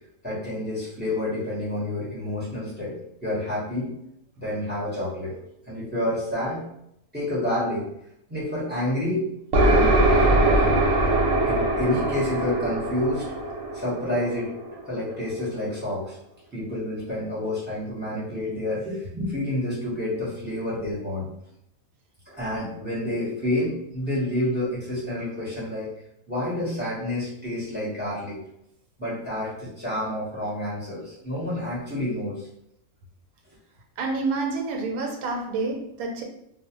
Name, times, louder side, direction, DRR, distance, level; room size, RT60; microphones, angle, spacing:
voice 1, 0.2-3.0 3.2-3.9 4.4-5.3 5.7-6.6 7.1-7.9 8.3-9.2 9.6-10.8 11.5-13.3 13.7-14.5 14.8-16.2 16.5-21.3 22.3-25.9 26.3-28.4 29.0-32.5, left 1 dB, 10° right, -8 dB, 0.7 m, -29 dB
sound 1, 9.5-15.1, right 1 dB, 70° right, 0.9 m, -22 dB
voice 2, 34.0-36.2, right 3 dB, 90° right, 1 dB, 1.0 m, -28 dB
2.4 x 2.0 x 2.9 m, 0.77 s
omnidirectional pair, 1.5 m